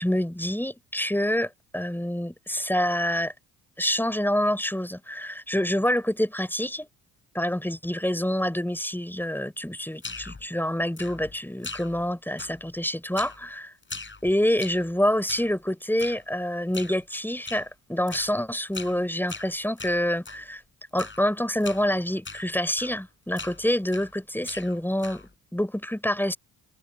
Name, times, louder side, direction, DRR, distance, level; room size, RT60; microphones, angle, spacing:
voice 1, 0.0-3.3 3.8-6.9 7.3-13.7 14.2-20.6 20.9-26.4, left 1 dB, 5° left, 4.8 m, -27 dB
sound 1, 10.0-10.5 11.0-11.4 11.6-12.1 12.4-12.8 13.2-13.5 13.8-14.9 15.3-15.6 16.0-16.2 16.7-17.0 17.5-17.7 18.1-18.3 18.7-19.0 19.3-20.4 21.0-21.3 21.6-21.9 22.2-22.5 22.8-23.1 23.4-24.2 24.4-25.3, left 3 dB, 25° left, 5.0 m, -40 dB
supercardioid pair, 60°, 46 cm